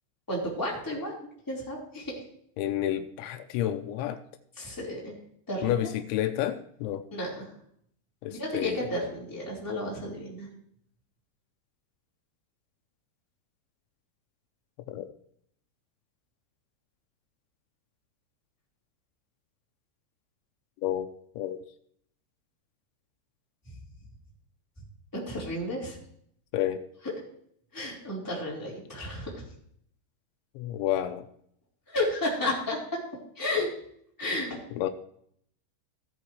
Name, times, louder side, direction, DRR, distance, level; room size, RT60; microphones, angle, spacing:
voice 1, 0.3-1.2 1.5-2.2 4.6-5.1 5.5-5.8 7.1-7.5 8.3-10.5 25.1-26.0 27.7-29.4 31.9-33.0 33.3-33.7 34.2-34.6, left 1 dB, 5° left, -5 dB, 3.1 m, -32 dB
voice 2, 2.6-4.2 5.6-7.0 8.2-8.9 14.9-15.1 20.8-21.1 21.4-21.6 26.5-26.8 30.6-31.2 34.8-34.9, left 12 dB, 85° left, 9 dB, 3.0 m, -30 dB
16.5 x 8.3 x 3.2 m, 0.66 s
omnidirectional pair, 5.4 m